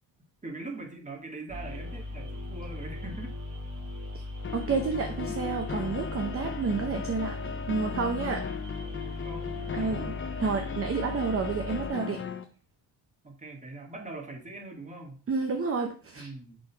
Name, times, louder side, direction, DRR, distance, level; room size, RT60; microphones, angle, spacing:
voice 1, 0.4-3.4 9.0-10.4 13.2-15.3 16.2-16.6, right 2 dB, 15° right, 2 dB, 1.3 m, -42 dB
sound 1, 1.5-11.9, left 2 dB, 50° right, 3.3 m, -38 dB
sound 2, 4.4-12.5, left 7 dB, 30° left, 0.4 m, -37 dB
voice 2, 4.5-7.3 7.7-8.4 9.7-10.1 10.4-12.2 15.3-16.3, right 4 dB, 30° right, 5 dB, 0.7 m, -30 dB
6.2 x 3.7 x 4.4 m, 0.41 s
cardioid pair, 125°, 42 cm